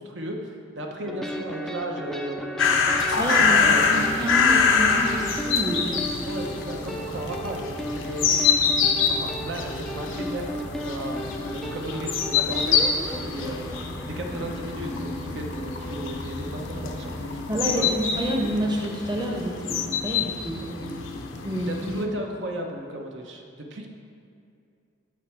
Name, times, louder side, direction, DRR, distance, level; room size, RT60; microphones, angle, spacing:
voice 1, 0.0-3.1 3.4-3.9 6.2-8.6 9.1-13.7 14.1-17.4 17.7-18.0 21.6-23.9, right 1 dB, 65° right, 2 dB, 0.9 m, -35 dB
sound 1, 1.1-17.3, equal, ahead, 0.4 m, -35 dB
sound 2, 2.6-22.0, left 5 dB, 80° left, 0.8 m, -26 dB
sound 3, 3.1-21.9, left 3 dB, 55° left, 0.5 m, -41 dB
voice 2, 3.1-6.1 17.5-21.1 21.4-22.0, equal, 20° right, -1 dB, 0.9 m, -29 dB
13.5 x 4.7 x 4.5 m, 2.5 s
head